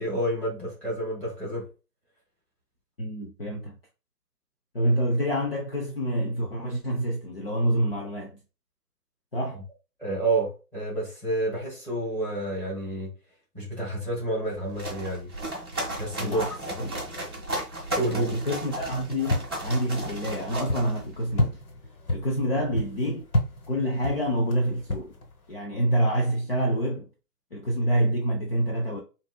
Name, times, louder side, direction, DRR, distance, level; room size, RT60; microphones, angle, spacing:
voice 1, 0.0-1.7 10.0-13.1 13.5-15.3 15.9-16.4 18.0-18.3, right 1 dB, 5° left, 1.6 m, -29 dB
voice 2, 3.0-3.8 4.7-8.4 9.3-9.6 16.2-17.0 18.1-21.6 22.1-23.3 23.7-25.2 25.5-27.1 27.5-29.0, equal, 35° left, 0.7 m, -27 dB
sound 1, 14.4-21.4, right 1 dB, 15° right, 0.6 m, -35 dB
sound 2, 18.7-25.5, left 1 dB, 70° left, 1.7 m, -32 dB
7.0 x 2.8 x 2.2 m
figure-of-eight pair, 155°, 48 cm